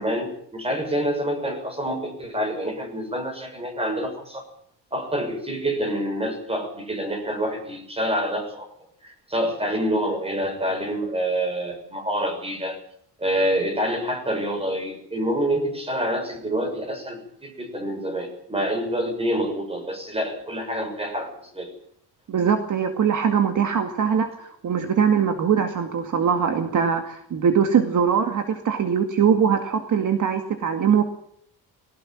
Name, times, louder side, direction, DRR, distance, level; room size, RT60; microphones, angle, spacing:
voice 1, 0.0-4.4 4.9-8.7 9.0-12.8 13.2-21.7, equal, 15° right, 6 dB, 6.4 m, -27 dB
voice 2, 22.3-31.1, right 7 dB, 50° right, 6 dB, 2.2 m, -22 dB
20.5 x 18.0 x 8.8 m, 0.65 s
cardioid pair, 150°, 40 cm